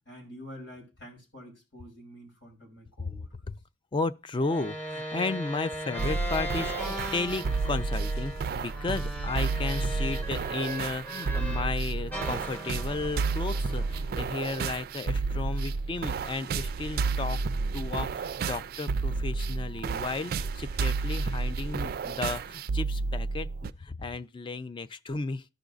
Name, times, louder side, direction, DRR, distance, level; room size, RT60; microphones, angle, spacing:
voice 1, 0.1-3.3, equal, 75° left, 3.1 m, -47 dB
voice 2, 3.0-3.6 3.9-17.4 17.7-25.5, left 3 dB, 25° left, 0.3 m, -34 dB
sound 1, 4.4-11.8 12.1-14.5, right 1 dB, 10° left, 0.7 m, -38 dB
sound 2, 6.0-23.7, right 4 dB, 55° right, 0.3 m, -31 dB
13.5 x 5.1 x 2.4 m
head